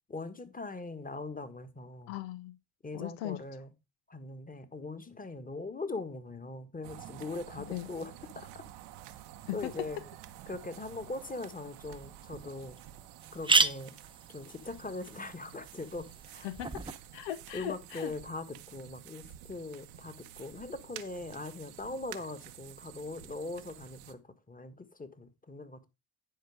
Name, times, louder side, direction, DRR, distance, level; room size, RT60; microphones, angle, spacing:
voice 1, 0.1-2.2 2.8-3.7 4.1-8.6 9.5-10.0 10.5-12.8 13.3-13.9 14.3-16.1 16.3-16.5 17.5-25.9, left 3 dB, 15° left, 1.6 m, -41 dB
voice 2, 2.1-2.6 2.9-3.4 7.7-7.9 9.5-9.7 16.4-16.8 17.1-18.1, left 14 dB, 80° left, 0.8 m, -38 dB
sound 1, 6.8-24.1, right 12 dB, 85° right, 0.9 m, -50 dB
sound 2, 11.9-12.0 12.5-12.6 12.8-12.9 13.2-17.0, right 3 dB, 10° right, 0.7 m, -32 dB
10.5 x 4.7 x 4.8 m
hypercardioid pair, 55°, 48 cm